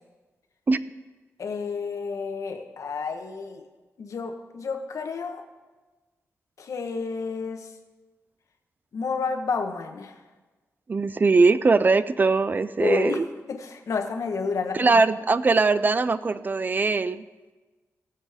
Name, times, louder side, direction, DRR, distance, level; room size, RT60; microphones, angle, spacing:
voice 1, 1.4-3.6 4.0-5.4 6.6-7.7 8.9-10.1 12.8-13.2 13.5-15.0, left 4 dB, 75° left, 5 dB, 1.1 m, -30 dB
voice 2, 10.9-13.3 14.7-17.2, right 3 dB, 35° right, 15 dB, 0.4 m, -21 dB
19.5 x 7.4 x 3.5 m, 1.3 s
wide cardioid pair, 105°, 6 cm